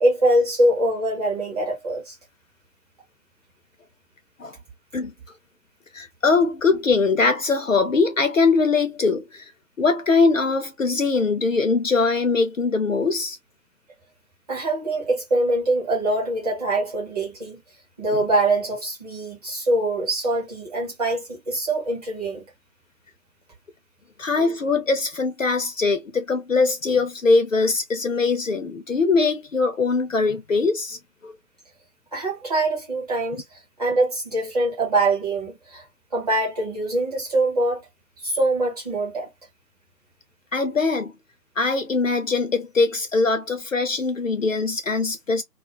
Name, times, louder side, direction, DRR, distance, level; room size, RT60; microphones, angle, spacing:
voice 1, 0.0-2.1 14.5-17.6 18.0-22.4 32.1-35.8 36.1-37.8 38.2-39.3, right 2 dB, 25° right, 1.0 m, -23 dB
voice 2, 5.9-9.5 9.8-13.4 24.2-31.0 31.2-31.3 40.5-41.1 41.6-45.4, left 4 dB, 55° left, 0.6 m, -22 dB
2.3 x 2.1 x 2.7 m
figure-of-eight pair, 150°, 50 cm